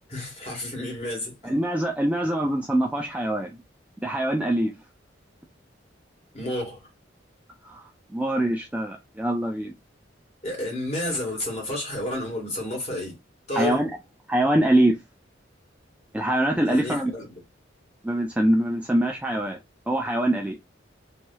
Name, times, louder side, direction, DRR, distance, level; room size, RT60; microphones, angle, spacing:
voice 1, 0.1-1.5 6.3-6.9 10.4-13.2 13.5-13.8 16.6-17.3, left 1 dB, 35° left, 1.5 m, -31 dB
voice 2, 1.4-3.5 4.0-4.7 7.6-9.7 13.5-13.9 14.3-15.0 16.1-17.1 18.0-19.6 19.9-20.6, right 1 dB, 5° right, 0.3 m, -24 dB
3.1 x 2.7 x 2.2 m
head